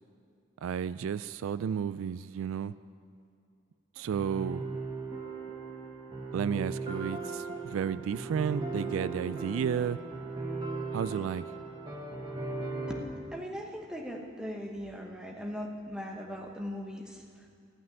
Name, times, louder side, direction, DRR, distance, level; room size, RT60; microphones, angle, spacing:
voice 1, 0.6-2.7 4.0-4.6 6.3-10.0 10.9-11.4, right 7 dB, 85° right, 16 dB, 0.3 m, -32 dB
sound 1, 4.1-13.0, right 3 dB, 20° right, 1.3 m, -37 dB
voice 2, 12.9-17.5, equal, 5° right, 1 dB, 1.0 m, -39 dB
14.5 x 6.0 x 9.3 m, 2.4 s
head